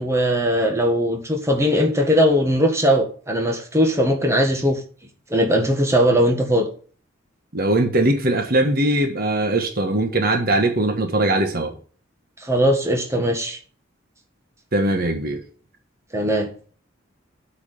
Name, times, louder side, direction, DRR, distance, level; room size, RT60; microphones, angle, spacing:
voice 1, 0.0-4.8 5.3-6.7 12.4-13.6 16.1-16.7, equal, 15° right, 1.7 m, -19 dB
voice 2, 7.5-11.7 14.7-15.4, right 1 dB, 50° right, 1.4 m, -20 dB
8.6 x 5.0 x 6.3 m
head